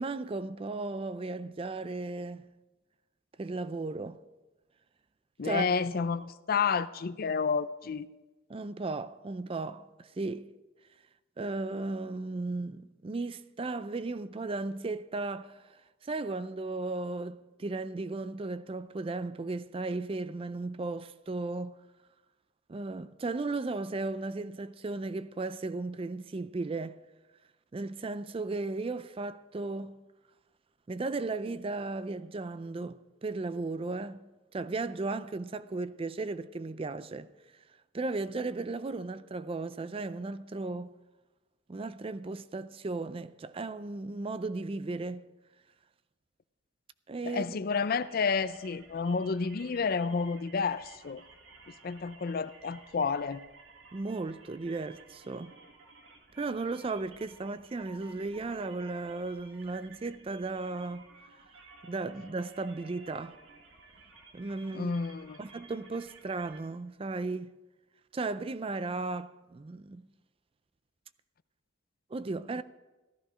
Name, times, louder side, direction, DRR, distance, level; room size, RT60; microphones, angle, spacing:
voice 1, 0.0-2.5 3.4-4.2 5.4-5.7 8.5-10.5 11.4-21.8 22.7-27.0 27.7-30.0 30.9-37.3 37.9-40.9 41.7-45.3 47.1-47.6 53.9-55.6 56.4-61.1 61.8-63.4 64.3-64.9 65.4-67.5 68.1-70.1 72.1-72.6, right 3 dB, 30° right, 0.4 m, -35 dB
voice 2, 5.4-8.1 47.2-51.2 51.8-53.4 64.7-65.4, left 5 dB, 50° left, 0.5 m, -30 dB
sound 1, 47.7-66.6, right 3 dB, 80° right, 2.1 m, -55 dB
15.0 x 13.5 x 5.0 m
head